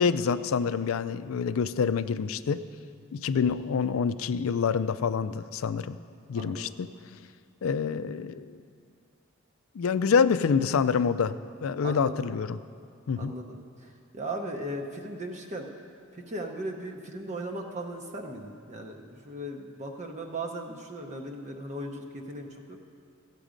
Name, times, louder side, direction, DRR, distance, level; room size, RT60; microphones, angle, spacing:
voice 1, 0.0-2.6 3.1-6.0 6.3-6.9 7.6-8.6 9.7-11.3 11.6-12.6 13.1-13.3, left 6 dB, 75° left, 13 dB, 0.4 m, -26 dB
voice 2, 6.3-6.6 11.8-12.3 13.2-15.7 16.1-22.8, right 1 dB, 35° right, 1 dB, 0.8 m, -37 dB
15.0 x 8.3 x 5.1 m, 2.4 s
head